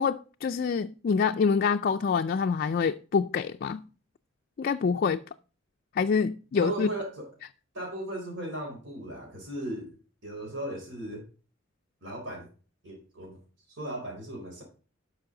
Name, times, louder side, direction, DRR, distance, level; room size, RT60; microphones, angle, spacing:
voice 1, 0.0-3.8 4.6-5.2 6.0-6.9, left 5 dB, 50° left, 0.3 m, -26 dB
voice 2, 6.6-7.3 7.7-9.9 10.2-11.3 12.0-12.5 12.8-13.4 13.8-14.6, right 1 dB, 65° right, 4.2 m, -36 dB
10.5 x 6.3 x 3.8 m
head